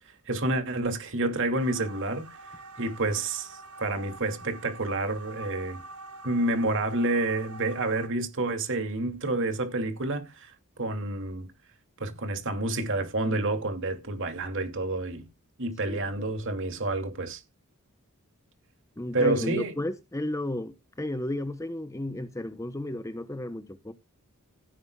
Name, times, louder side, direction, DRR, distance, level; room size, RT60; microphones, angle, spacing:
voice 1, 0.3-2.3 2.8-5.8 6.2-10.5 10.8-11.5 12.0-15.3 15.6-17.4 19.1-19.7, right 2 dB, 55° right, 2.6 m, -29 dB
sound 1, 1.6-8.1, right 3 dB, 80° right, 1.7 m, -45 dB
voice 2, 15.8-16.3 19.0-23.9, left 1 dB, 15° left, 0.8 m, -33 dB
16.5 x 9.5 x 2.3 m
head